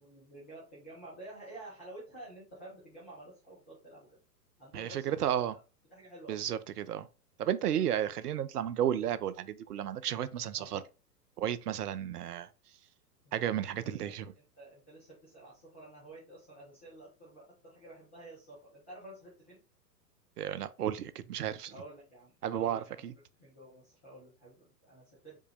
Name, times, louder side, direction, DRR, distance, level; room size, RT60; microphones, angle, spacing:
voice 1, 0.0-4.1 4.6-5.6 5.9-6.6 7.7-7.9 10.6-10.7 13.2-14.3 14.6-19.6 21.7-23.0 23.4-25.4, right 1 dB, 10° left, 0.3 m, -51 dB
voice 2, 4.7-5.5 6.3-7.1 7.4-10.8 11.4-12.5 13.3-14.3 20.4-21.7 22.4-23.1, right 10 dB, 70° right, 0.6 m, -33 dB
5.1 x 2.2 x 3.2 m
figure-of-eight pair, 110°, 49 cm